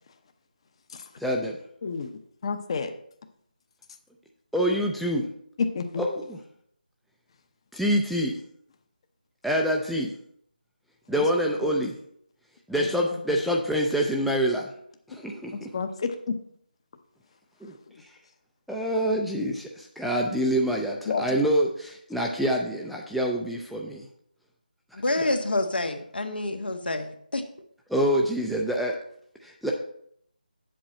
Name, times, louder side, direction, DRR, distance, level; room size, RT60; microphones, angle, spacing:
voice 1, 1.2-1.6 4.5-5.3 6.0-6.4 7.7-8.4 9.4-10.1 11.1-11.9 12.7-14.7 15.1-15.7 17.6-17.7 18.7-24.1 25.2-25.3 27.9-29.0 29.4-29.7, equal, ahead, -2 dB, 0.3 m, -26 dB
voice 2, 1.8-2.9 5.6-6.0 11.1-11.3 11.6-11.7 12.7-13.4 15.1-15.2 15.5-16.4 21.1-21.3, left 5 dB, 35° left, 8 dB, 0.8 m, -31 dB
voice 3, 25.0-27.4, left 2 dB, 80° left, 6 dB, 1.3 m, -27 dB
8.7 x 7.6 x 4.3 m, 0.67 s
figure-of-eight pair, 165°, 5 cm